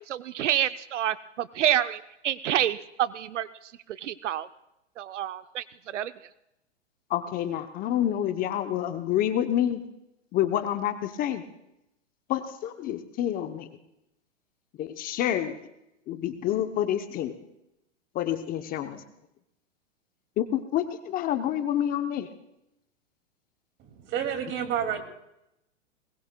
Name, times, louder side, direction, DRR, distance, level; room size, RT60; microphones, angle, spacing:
voice 1, 0.1-3.5 4.0-4.5 5.0-5.6 5.9-6.1, right 11 dB, 80° right, 14 dB, 0.6 m, -27 dB
voice 2, 7.1-9.8 10.3-11.4 12.3-13.7 14.8-15.5 16.1-17.3 18.1-19.0 20.4-22.3, left 11 dB, 25° left, 8 dB, 0.7 m, -28 dB
voice 3, 24.1-25.0, right 8 dB, 30° right, 6 dB, 2.3 m, -29 dB
22.5 x 20.5 x 2.2 m, 0.85 s
hypercardioid pair, 125°, 36 cm